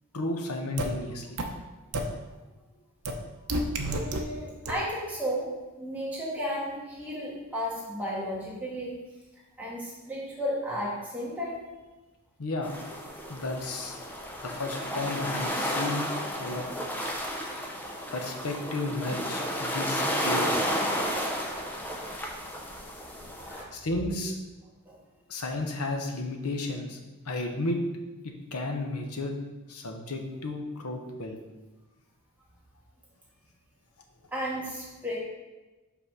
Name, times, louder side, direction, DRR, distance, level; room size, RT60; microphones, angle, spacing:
voice 1, 0.1-1.4 12.4-12.9 13.3-13.9 14.4-16.1 16.4-16.7 18.1-20.7 23.7-24.4 25.3-27.0 27.2-27.8 28.2-29.3 29.7-31.4, left 2 dB, 85° left, 3 dB, 1.0 m, -33 dB
sound 1, 0.8-0.9 1.4-1.5 1.9-2.0 3.1-3.2 3.5-4.2 4.7-4.8, right 2 dB, 75° right, 0.8 m, -29 dB
voice 2, 3.8-5.5 5.8-9.0 9.6-11.7 23.4-23.7 24.9-25.0 34.3-35.2, equal, 5° right, -6 dB, 1.8 m, -33 dB
sound 2, 12.6-23.6, equal, 10° left, 0.7 m, -32 dB
5.7 x 4.1 x 6.1 m, 1.2 s
head